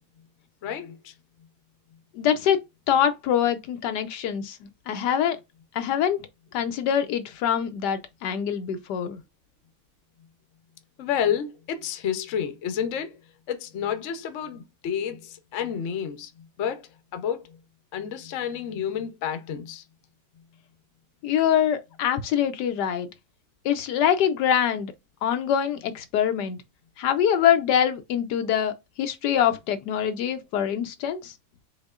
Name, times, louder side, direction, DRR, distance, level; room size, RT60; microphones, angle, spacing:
voice 1, 0.6-1.1 11.0-13.2 13.5-16.8 17.1-17.6 17.9-19.8, left 8 dB, 55° left, 1.0 m, -30 dB
voice 2, 2.1-5.4 5.7-6.3 6.5-9.2 21.2-23.1 23.6-24.9 25.2-26.6 27.0-31.3, left 9 dB, 80° left, 1.2 m, -24 dB
5.3 x 3.6 x 2.4 m
omnidirectional pair, 1.8 m